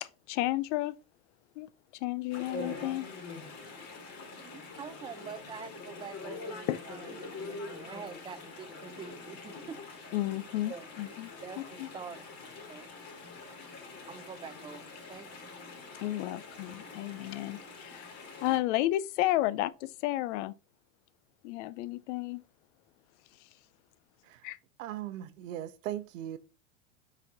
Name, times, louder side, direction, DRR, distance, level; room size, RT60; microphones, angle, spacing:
voice 1, 0.0-0.9 1.6-1.7 2.0-3.1 6.7-6.8 10.1-11.3 11.8-11.9 16.0-20.5 21.4-22.4 24.4-24.6, left 15 dB, 60° left, 0.6 m, -32 dB
Chatter / Stream, 2.3-18.6, left 3 dB, 40° left, 2.6 m, -45 dB
voice 2, 4.3-9.8 10.7-10.9 11.4-11.6 11.9-12.2 12.7-12.9 14.1-15.5 17.0-17.1, right 6 dB, 15° right, 0.5 m, -45 dB
voice 3, 24.8-26.4, right 12 dB, 75° right, 0.8 m, -39 dB
5.2 x 4.2 x 5.3 m
supercardioid pair, 120°, 39 cm